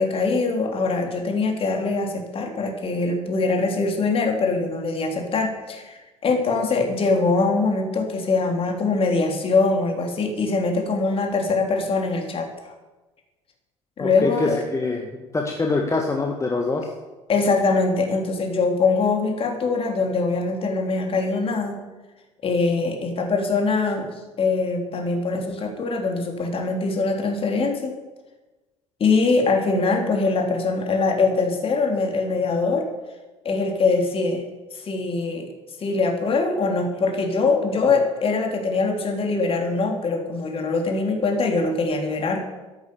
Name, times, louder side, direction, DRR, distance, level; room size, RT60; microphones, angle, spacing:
voice 1, 0.0-12.7 14.0-14.6 17.3-21.8 22.4-27.9 29.0-32.9 33.5-34.4 34.7-35.5 35.8-42.4, left 3 dB, 35° left, 3 dB, 3.4 m, -23 dB
voice 2, 14.0-15.1 15.3-16.9, left 3 dB, 20° left, 2 dB, 1.7 m, -24 dB
14.0 x 11.0 x 7.0 m, 1.2 s
figure-of-eight pair, 55°, 16 cm